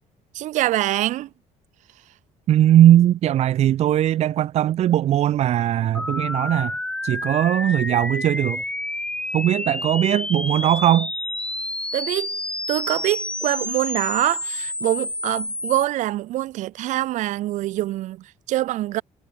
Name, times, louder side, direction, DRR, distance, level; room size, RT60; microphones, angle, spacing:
voice 1, 0.3-1.3 11.9-12.4 12.7-19.0, right 15 dB, 75° right, 2.5 m, -24 dB
voice 2, 2.5-6.8 7.0-8.6 9.3-11.1, right 12 dB, 60° right, 2.0 m, -19 dB
sound 1, 5.9-15.8, left 1 dB, 10° left, 4.2 m, -29 dB
cardioid pair, 135°, 13 cm